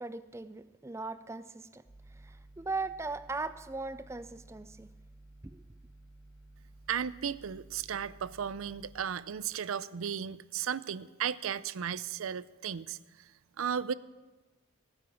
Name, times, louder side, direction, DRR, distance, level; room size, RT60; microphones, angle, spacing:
voice 1, 0.0-1.8 2.1-4.9 5.4-5.6, right 3 dB, 15° right, 13 dB, 0.4 m, -39 dB
sound 1, 1.8-9.0, right 1 dB, 20° left, 3.0 m, -55 dB
voice 2, 6.9-13.0 13.6-13.9, right 8 dB, 80° right, 17 dB, 0.5 m, -35 dB
16.5 x 9.8 x 7.1 m, 1.2 s
head